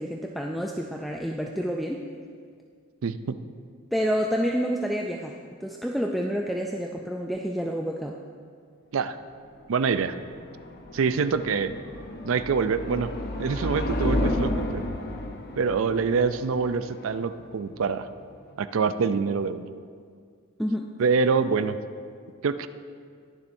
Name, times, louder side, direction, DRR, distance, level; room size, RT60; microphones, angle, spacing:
voice 1, 0.0-2.1 3.9-8.2 20.6-20.9, equal, ahead, 0 dB, 0.3 m, -29 dB
voice 2, 3.0-3.4 8.9-9.2 9.7-10.2 10.9-11.7 12.2-13.1 13.4-14.8 15.6-18.1 18.6-19.6 21.0-21.8 22.4-22.7, right 5 dB, 70° right, 12 dB, 0.4 m, -25 dB
sound 1, 9.6-18.5, left 1 dB, 50° left, 0.8 m, -32 dB
21.0 x 7.1 x 2.6 m, 2.2 s
head